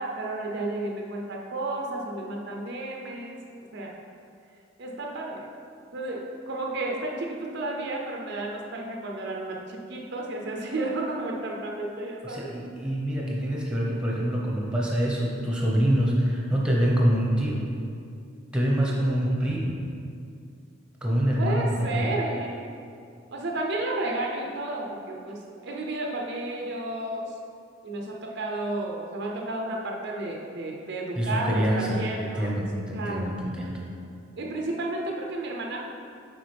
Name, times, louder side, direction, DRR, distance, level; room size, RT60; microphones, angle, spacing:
voice 1, 0.0-3.5 3.7-3.9 4.8-5.5 5.9-12.5 18.9-19.2 21.4-22.7 23.3-27.3 27.8-32.5 32.9-33.3 34.4-35.8, right 2 dB, 55° right, 0 dB, 0.6 m, -32 dB
voice 2, 12.2-17.7 18.5-19.8 21.0-22.1 31.2-33.8, equal, 5° right, -4 dB, 0.9 m, -25 dB
7.8 x 4.8 x 3.4 m, 2.5 s
head